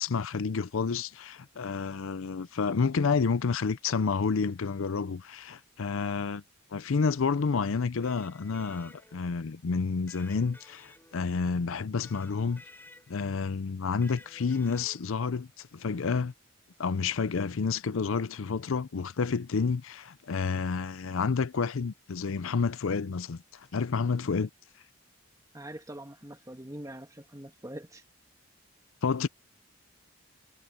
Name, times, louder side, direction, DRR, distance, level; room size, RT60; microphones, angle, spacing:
voice 1, 0.0-6.4 6.7-12.6 13.1-16.3 16.8-24.5 29.0-29.3, left 5 dB, 75° left, 0.5 m, -29 dB
Electric guitar, 8.0-9.4 10.1-11.5 12.0-13.3 14.0-15.2, left 2 dB, 10° left, 4.9 m, -54 dB
voice 2, 25.5-28.0, right 1 dB, 15° right, 1.7 m, -43 dB
head